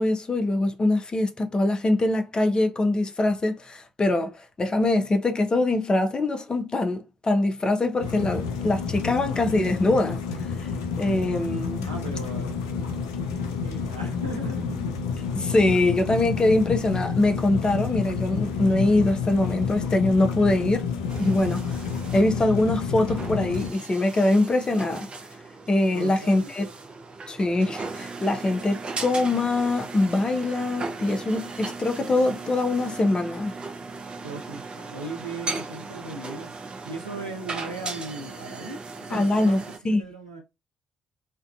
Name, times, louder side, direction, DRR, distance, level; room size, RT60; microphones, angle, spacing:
voice 1, 0.0-10.2 11.0-11.9 15.3-20.9 21.2-21.8 22.1-25.1 25.7-26.7 27.3-33.5 39.1-40.0, left 2 dB, 30° left, 0.6 m, -23 dB
sound 1, 8.0-23.7, left 6 dB, 75° left, 0.4 m, -29 dB
voice 2, 11.8-12.6 13.4-14.9 20.1-20.3 25.9-26.5 34.2-36.5 36.8-40.4, right 2 dB, 85° right, 0.4 m, -37 dB
sound 2, 21.1-39.8, right 3 dB, 35° right, 0.5 m, -37 dB
2.5 x 2.3 x 2.3 m
figure-of-eight pair, 40°, 3 cm